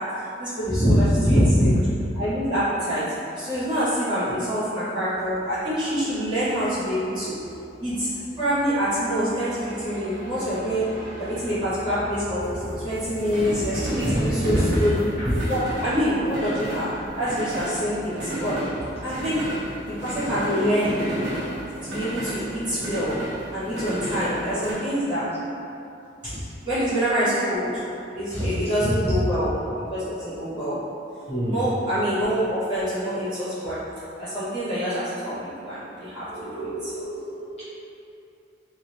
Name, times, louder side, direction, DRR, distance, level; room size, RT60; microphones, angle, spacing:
voice 1, 0.0-1.7 2.1-7.4 7.8-15.1 15.5-18.7 19.0-19.6 19.9-21.1 21.8-25.5 26.2-26.4 26.6-27.8 28.1-30.9 31.5-33.9 34.2-36.9, equal, 25° right, -16 dB, 1.5 m, -26 dB
voice 2, 0.8-1.7 12.6-12.7 14.0-14.8 15.2-15.3 28.3-28.5 28.8-28.9 31.3-31.6 36.3-37.6, equal, 30° left, -14 dB, 1.1 m, -23 dB
sound 1, 5.2-24.7, right 1 dB, 70° right, 0.9 m, -33 dB
3.0 x 2.9 x 2.7 m, 2.7 s
head